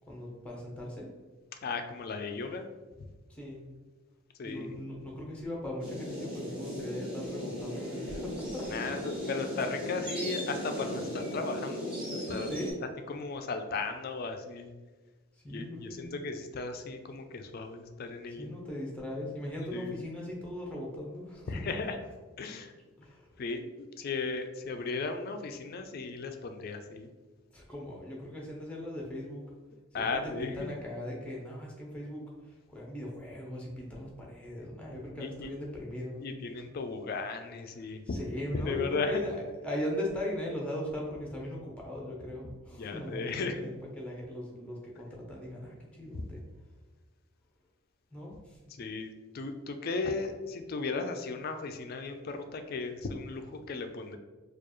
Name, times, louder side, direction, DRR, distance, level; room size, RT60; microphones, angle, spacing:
voice 1, 0.1-1.1 3.3-3.6 4.4-9.3 12.4-12.7 15.4-16.1 18.4-21.5 23.0-23.3 27.5-29.4 30.0-36.3 37.8-46.4 48.1-48.6, left 1 dB, 5° left, -2 dB, 0.6 m, -39 dB
voice 2, 1.6-2.6 4.4-4.8 8.7-12.5 12.8-14.7 15.5-18.5 19.7-20.0 21.5-22.0 22.4-22.7 23.4-27.1 29.9-30.7 35.2-35.5 36.2-38.2 38.5-39.2 42.8-43.7 46.1-46.2 48.8-54.2, left 4 dB, 45° left, 7 dB, 0.3 m, -36 dB
sound 1, 5.8-12.7, equal, 25° right, 1.1 m, -37 dB
4.4 x 2.4 x 3.0 m, 1.3 s
head